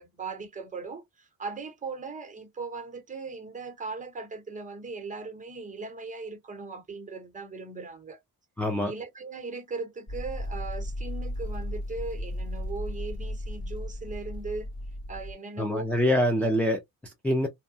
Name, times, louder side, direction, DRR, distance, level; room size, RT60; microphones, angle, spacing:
voice 1, 0.0-8.2 8.8-14.7 15.1-16.6, right 4 dB, 20° right, 0.8 m, -38 dB
voice 2, 8.6-8.9 15.6-17.5, left 1 dB, 5° left, 0.3 m, -25 dB
sound 1, 10.1-15.3, left 1 dB, 40° left, 1.6 m, -35 dB
2.7 x 2.1 x 2.5 m
cardioid pair, 125°, 37 cm